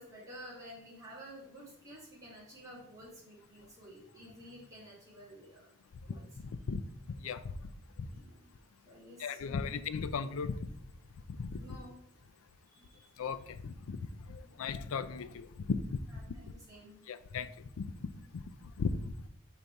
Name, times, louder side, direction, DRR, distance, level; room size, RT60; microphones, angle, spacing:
voice 1, 0.0-5.7 6.0-6.2 8.1-8.4 8.9-9.8 11.6-12.0 12.7-13.1 16.1-17.0, equal, 15° right, 2.1 m, -52 dB
voice 2, 7.1-7.5 8.0-8.1 9.2-10.7 11.4-11.6 13.2-14.0 14.3-16.0 17.1-19.1, left 5 dB, 80° left, 0.4 m, -37 dB
5.2 x 4.0 x 4.5 m
head